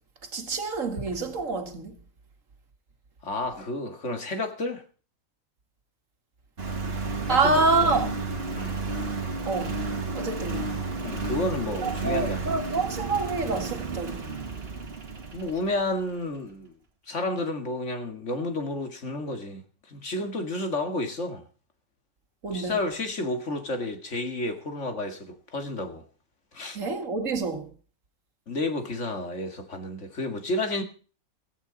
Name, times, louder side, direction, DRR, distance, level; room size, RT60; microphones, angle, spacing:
voice 1, 0.3-2.0 7.3-8.1 9.5-9.8 10.1-10.7 11.8-14.3 22.4-22.8 26.8-27.7, right 3 dB, 65° right, 2.3 m, -27 dB
voice 2, 3.2-4.8 7.3-8.2 8.5-8.8 11.0-12.5 15.3-16.7 17.1-21.4 22.5-26.0 26.5-26.8 28.5-30.8, left 2 dB, 55° left, 2.4 m, -31 dB
Engine, 6.6-16.0, right 3 dB, 45° right, 2.0 m, -32 dB
16.0 x 15.0 x 4.0 m
omnidirectional pair, 1.5 m